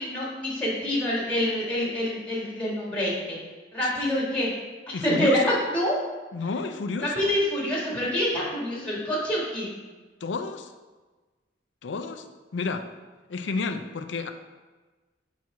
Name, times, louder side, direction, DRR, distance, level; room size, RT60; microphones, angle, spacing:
voice 1, 0.0-3.4 3.7-4.5 5.0-6.0 7.0-9.7, equal, 5° left, -5 dB, 1.7 m, -26 dB
voice 2, 4.9-5.6 6.3-7.3 10.2-10.7 11.8-12.3 12.5-12.9 13.3-14.3, left 4 dB, 85° left, 8 dB, 0.5 m, -31 dB
6.1 x 4.2 x 4.8 m, 1.3 s
head